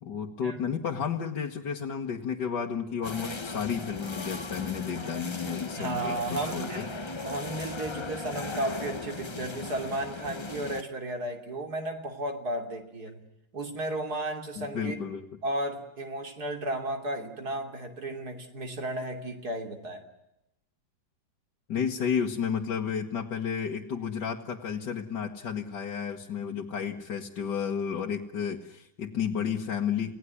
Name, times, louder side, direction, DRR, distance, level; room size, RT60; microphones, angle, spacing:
voice 1, 0.0-6.9 14.6-15.2 21.7-30.1, left 7 dB, 60° left, 0 dB, 2.1 m, -32 dB
sound 1, 3.0-10.8, left 3 dB, 30° left, 0.5 m, -37 dB
voice 2, 5.8-13.2 13.5-15.0 15.4-20.1, right 1 dB, 50° right, 5 dB, 3.6 m, -34 dB
29.0 x 17.5 x 9.7 m, 0.87 s
omnidirectional pair, 2.1 m